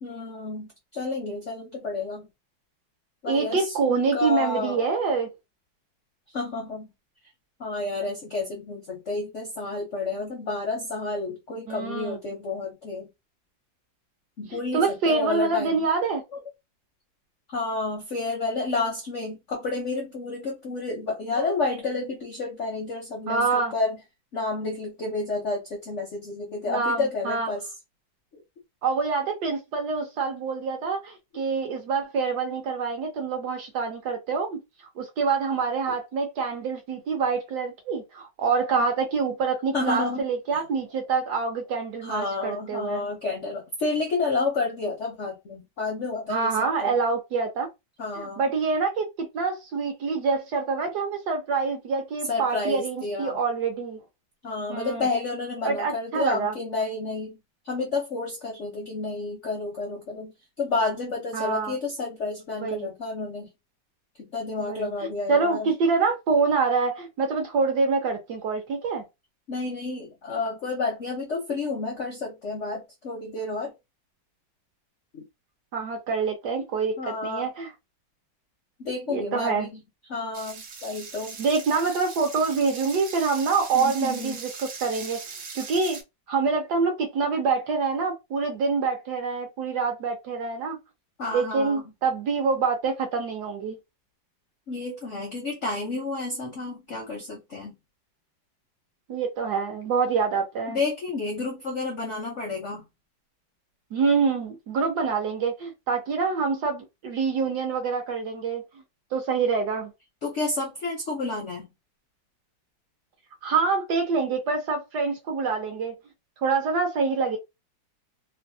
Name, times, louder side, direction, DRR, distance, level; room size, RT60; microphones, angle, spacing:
voice 1, 0.0-2.3 3.2-4.8 6.3-6.9 7.6-13.1 14.4-15.8 16.3-16.4 17.5-24.0 24.3-27.6 39.7-40.3 42.0-46.9 48.0-48.4 52.3-53.4 54.4-57.4 57.6-60.3 60.6-63.5 64.2-65.7 69.5-73.7 75.1-75.2 77.0-77.5 78.8-79.8 80.1-81.4 83.7-84.4 91.2-91.8 94.7-97.8 100.7-102.8 110.2-111.7, left 3 dB, 65° left, 0.7 m, -30 dB
voice 2, 3.3-5.3 11.7-12.2 14.7-16.2 23.3-23.7 26.7-27.5 28.8-34.6 35.0-43.0 46.3-47.7 48.2-54.0 54.7-55.1 55.6-56.5 61.3-61.8 62.6-62.9 64.6-64.9 65.3-69.0 75.7-77.7 79.1-79.7 81.4-85.2 85.5-86.0 86.3-90.8 91.3-93.8 99.1-100.8 103.9-108.6 109.1-109.9 113.4-115.9 116.4-117.4, right 4 dB, 70° right, 1.0 m, -26 dB
sound 1, 80.3-86.0, right 5 dB, 90° right, 0.6 m, -40 dB
3.2 x 2.2 x 2.6 m
omnidirectional pair, 2.2 m